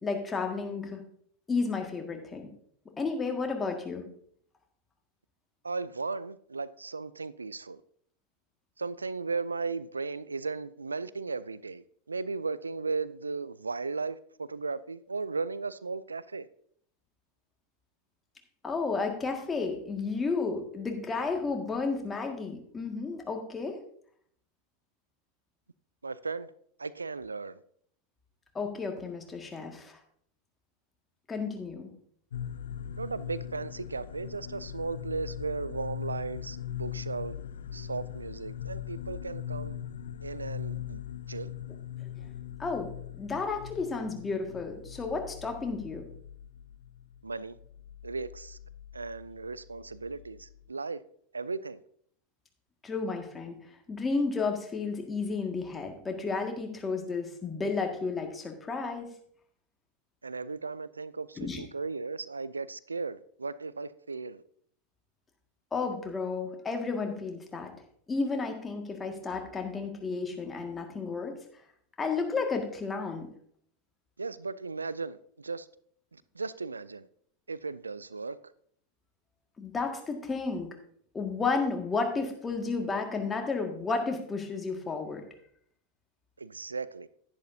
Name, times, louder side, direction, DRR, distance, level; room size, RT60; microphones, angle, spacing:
voice 1, 0.0-1.0 1.5-2.4 3.0-4.0 18.6-23.8 28.6-30.0 31.3-31.9 42.6-46.0 52.8-53.6 53.9-59.1 61.4-61.6 65.7-67.7 68.1-71.4 72.0-73.3 79.6-80.7 81.1-85.3, left 4 dB, 20° left, 1.8 m, -32 dB
voice 2, 5.6-7.8 8.8-16.5 26.0-26.5 26.8-27.6 33.0-37.3 37.7-39.8 40.2-41.0 41.3-41.5 47.2-47.6 48.0-48.6 48.9-51.0 51.3-51.8 60.2-64.4 74.2-75.7 76.1-77.1 77.5-78.4 86.4-87.1, right 4 dB, 90° right, 0.3 m, -36 dB
sound 1, 32.3-50.7, left 10 dB, 75° left, 0.4 m, -41 dB
10.5 x 10.5 x 2.7 m
hypercardioid pair, 90°, 0 cm